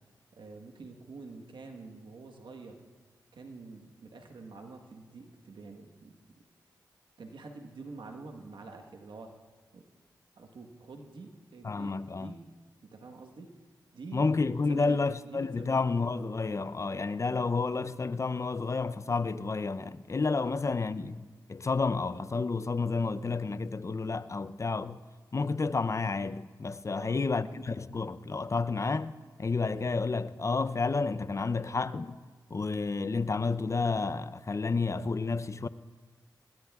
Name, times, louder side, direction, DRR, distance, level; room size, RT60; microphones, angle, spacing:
voice 1, 0.3-2.8 3.3-6.2 7.2-9.3 9.7-9.8 10.3-12.4 12.8-13.5 13.9-14.4 14.7-15.8 26.9-27.2, right 3 dB, 80° right, 1.3 m, -47 dB
voice 2, 11.6-12.3 14.1-25.0 25.3-29.1 29.4-32.2 32.5-35.7, left 4 dB, 40° left, 0.5 m, -30 dB
24.5 x 19.5 x 2.4 m
cardioid pair, 50°, 8 cm